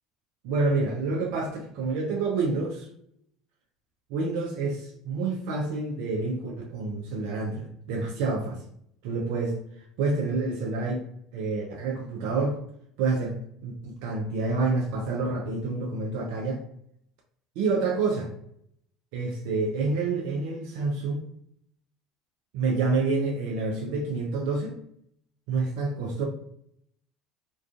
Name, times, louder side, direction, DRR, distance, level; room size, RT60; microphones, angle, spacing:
voice 1, 0.4-2.9 4.1-8.6 9.0-9.6 10.0-11.0 11.3-12.6 13.0-13.4 13.6-16.6 17.6-18.3 19.1-21.2 22.5-24.8 25.5-26.3, right 3 dB, 70° right, 0 dB, 0.4 m, -28 dB
2.4 x 2.3 x 2.3 m, 0.70 s
hypercardioid pair, 75°, 0 cm